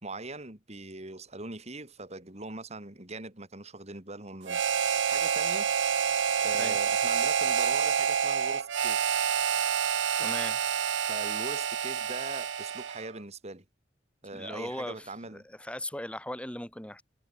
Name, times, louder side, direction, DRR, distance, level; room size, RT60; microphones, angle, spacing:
voice 1, 0.0-5.7 6.4-9.2 10.7-13.6 14.2-15.5, right 2 dB, 35° right, 3.5 m, -42 dB
Harmonica, 4.5-13.1, right 7 dB, 85° right, 0.7 m, -28 dB
voice 2, 10.2-10.6 14.3-17.0, left 1 dB, 5° left, 4.5 m, -38 dB
head